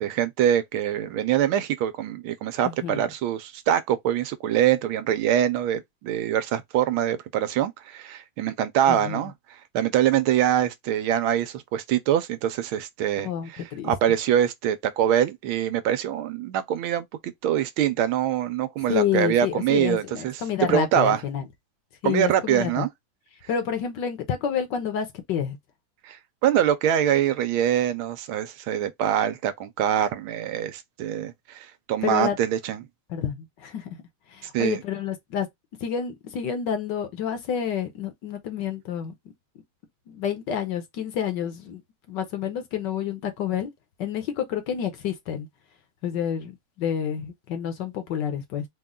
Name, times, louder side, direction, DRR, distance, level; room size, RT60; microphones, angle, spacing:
voice 1, 0.0-9.3 9.7-20.4 20.7-21.2 22.0-22.9 26.0-32.8 34.5-34.8, right 10 dB, 80° right, 1.5 m, -24 dB
voice 2, 2.6-3.0 8.9-9.2 13.2-13.9 18.9-21.5 22.0-22.9 23.5-25.6 32.0-32.4 33.1-33.9 34.3-35.5 35.8-39.1 40.1-41.8 42.1-43.7 44.0-45.5 46.0-48.6, left 8 dB, 65° left, 1.5 m, -29 dB
4.2 x 2.3 x 3.6 m
omnidirectional pair, 2.2 m